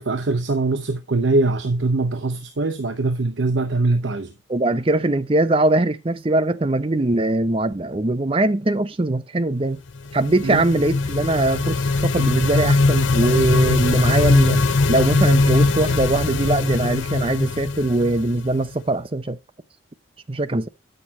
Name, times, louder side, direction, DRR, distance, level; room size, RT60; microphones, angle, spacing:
voice 1, 0.0-4.3 10.4-10.6, right 2 dB, 75° right, 0.8 m, -22 dB
voice 2, 4.5-9.8 10.1-14.6 14.9-19.4 20.3-20.7, right 2 dB, 30° right, 0.6 m, -21 dB
sound 1, 10.0-18.7, left 3 dB, 85° left, 0.7 m, -20 dB
8.9 x 6.6 x 4.1 m
head